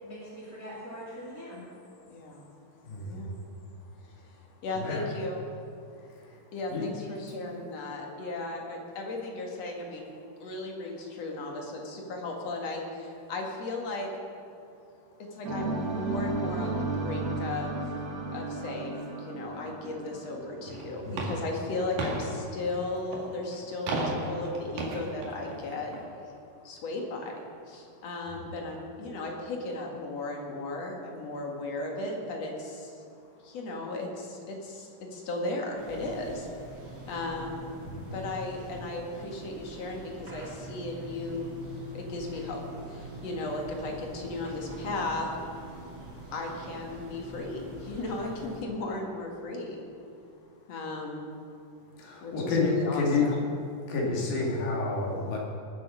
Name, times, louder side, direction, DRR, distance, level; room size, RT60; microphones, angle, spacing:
voice 1, 0.0-1.7 7.0-7.7, equal, 25° left, -9 dB, 2.6 m, -43 dB
voice 2, 2.1-2.4 3.0-3.3 4.6-5.4 6.5-10.1 10.4-14.1 15.3-17.8 18.3-25.9 26.6-27.3 27.7-33.0 33.4-36.5 37.1-37.8 38.1-41.6 41.9-42.6 42.9-45.3 46.3-49.8 50.7-51.3 52.2-53.4, left 2 dB, 50° left, 0 dB, 2.7 m, -36 dB
voice 3, 2.8-3.4 4.7-5.1 6.1-6.4 6.7-6.9 21.0-21.3 37.9-38.2 46.0-46.1 52.0-53.3 53.8-55.4, left 3 dB, 75° left, -2 dB, 4.0 m, -30 dB
sound 1, 15.4-21.4, right 2 dB, 80° right, 0.8 m, -34 dB
sound 2, 20.7-26.0, right 2 dB, 65° right, 3.3 m, -36 dB
sound 3, 35.8-48.6, right 1 dB, 30° right, 3.0 m, -44 dB
21.5 x 7.7 x 6.2 m, 2.5 s
omnidirectional pair, 4.1 m